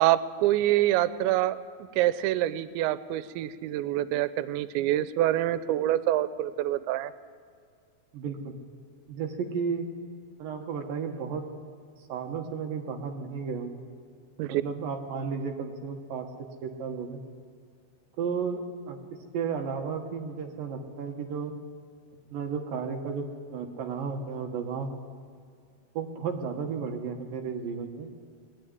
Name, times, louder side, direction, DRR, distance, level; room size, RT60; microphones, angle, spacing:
voice 1, 0.0-1.6 2.0-7.1 14.4-14.6, right 14 dB, 90° right, 14 dB, 3.0 m, -26 dB
voice 2, 8.1-8.5 9.1-9.9 10.4-11.5 12.1-13.7 14.5-16.3 16.6-17.2 18.2-21.5 22.3-24.9 25.9-28.1, right 6 dB, 65° right, 4 dB, 2.5 m, -33 dB
20.5 x 13.5 x 9.5 m, 2.1 s
omnidirectional pair, 5.1 m